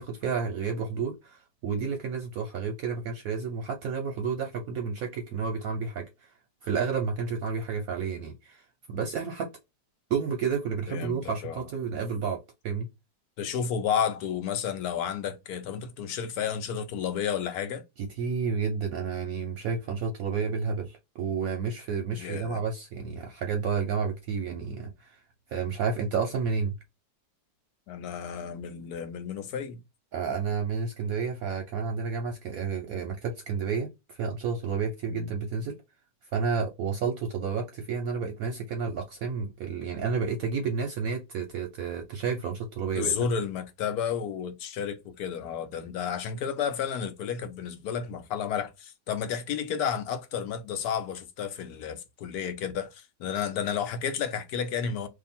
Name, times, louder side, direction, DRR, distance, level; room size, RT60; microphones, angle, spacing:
voice 1, 0.0-6.3 6.6-8.6 8.9-9.5 10.1-12.9 18.0-25.2 25.5-26.8 30.1-35.8 36.3-43.1, right 5 dB, 65° right, 0.9 m, -31 dB
voice 2, 10.9-11.6 13.4-17.8 22.2-22.6 27.9-29.8 35.1-35.3 43.0-55.1, left 7 dB, 70° left, 1.1 m, -32 dB
2.8 x 2.4 x 4.1 m
omnidirectional pair, 1.9 m